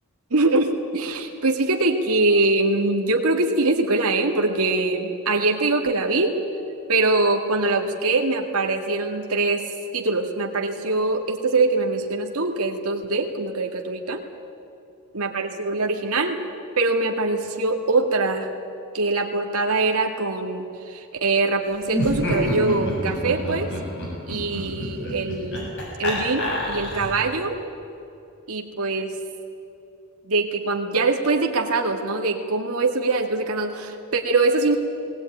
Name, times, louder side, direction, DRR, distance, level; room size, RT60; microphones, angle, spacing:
voice 1, 0.3-0.7 0.9-6.4 6.9-14.2 15.1-16.4 16.8-18.5 18.9-23.7 24.3-25.7 26.0-27.7 28.5-29.1 30.2-34.8, right 3 dB, 85° right, 2 dB, 2.0 m, -23 dB
Laughter, 21.9-27.3, equal, 55° left, 6.7 m, -28 dB
19.5 x 19.0 x 9.3 m, 2.6 s
head